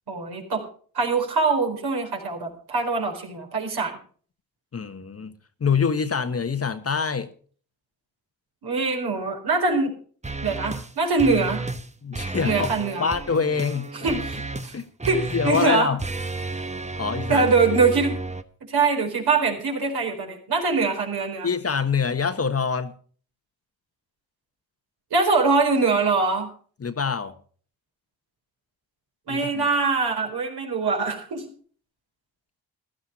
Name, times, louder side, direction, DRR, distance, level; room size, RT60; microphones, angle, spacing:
voice 1, 0.1-0.6 0.9-4.0 8.6-9.9 10.4-11.6 12.4-13.1 14.0-14.7 15.0-15.9 17.3-18.2 18.7-21.5 25.1-26.5 29.3-31.4, right 4 dB, 65° right, 4.4 m, -23 dB
voice 2, 4.7-5.3 5.6-7.3 12.0-12.7 13.0-14.2 14.7-14.9 15.3-16.0 17.0-17.5 21.4-22.9 26.8-27.3 29.3-29.6, left 5 dB, 35° left, 1.3 m, -25 dB
sound 1, 10.2-10.9 11.2-11.9 12.1-18.4, right 3 dB, 15° right, 1.2 m, -32 dB
15.5 x 12.0 x 4.1 m
hypercardioid pair, 45°, 42 cm